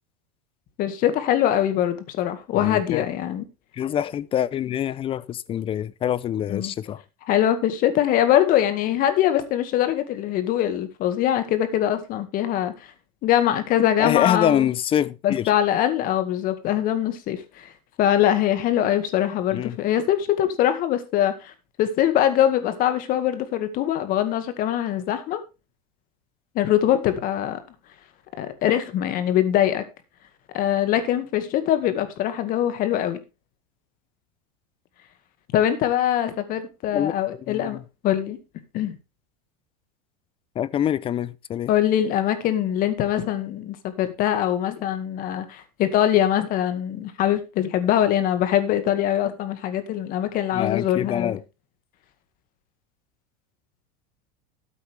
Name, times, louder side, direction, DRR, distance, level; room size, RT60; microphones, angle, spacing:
voice 1, 0.8-3.4 6.4-6.7 7.3-12.9 13.2-14.7 15.2-17.7 18.0-21.5 21.8-25.4 26.5-27.6 28.4-29.8 30.5-33.2 35.5-38.4 38.7-39.0 41.7-51.4, left 11 dB, 45° left, 2.0 m, -23 dB
voice 2, 2.5-3.0 3.7-7.0 14.0-15.5 19.5-19.8 36.9-37.1 37.5-37.8 40.6-41.7 50.5-51.4, left 10 dB, 25° left, 0.6 m, -25 dB
13.0 x 8.5 x 3.5 m
supercardioid pair, 130°, 20 cm